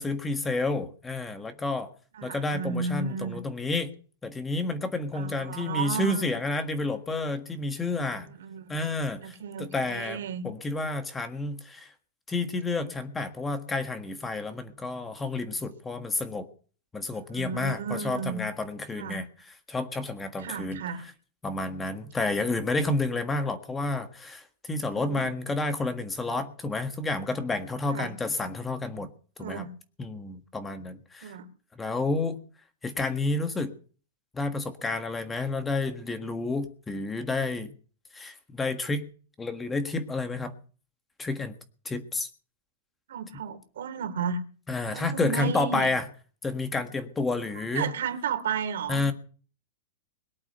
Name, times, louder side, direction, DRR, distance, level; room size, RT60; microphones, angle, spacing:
voice 1, 0.0-1.9 2.2-3.9 4.2-8.3 8.7-10.2 10.4-11.9 12.3-16.5 16.9-19.2 19.7-20.8 21.4-29.1 29.4-29.7 30.0-31.4 31.7-32.4 32.8-33.7 34.3-37.7 38.1-39.1 39.4-40.5 41.2-41.5 41.8-42.3 44.7-46.0 46.4-47.9 48.9-49.1, left 3 dB, 10° left, 1.5 m, -30 dB
voice 2, 2.2-3.4 5.1-6.3 8.0-8.8 9.2-10.5 17.3-18.4 18.9-19.2 20.4-21.0 24.8-25.3 27.9-28.1 29.4-29.7 31.2-31.5 43.1-44.4 44.9-45.9 46.7-46.8 47.6-49.1, right 6 dB, 80° right, 2.9 m, -33 dB
22.0 x 8.7 x 6.8 m
supercardioid pair, 155°, 0 cm